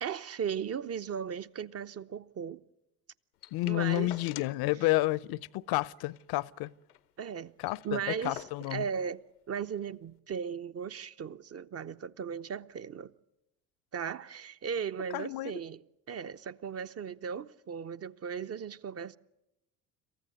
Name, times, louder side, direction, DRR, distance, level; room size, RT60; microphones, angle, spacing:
voice 1, 0.0-2.6 3.7-4.1 7.2-7.5 7.8-8.4 8.7-9.2 9.5-13.1 13.9-15.8 16.1-19.2, right 7 dB, 35° right, 0.8 m, -37 dB
sound 1, 3.4-4.7 5.0-5.1 5.4-5.6 6.0-7.1 7.4-7.5 7.6-8.9 9.8-9.9, left 13 dB, 85° left, 0.9 m, -49 dB
voice 2, 3.5-6.7 7.6-8.8 15.1-15.6, left 18 dB, 55° left, 0.7 m, -30 dB
27.0 x 15.0 x 9.6 m
hypercardioid pair, 65°, 45 cm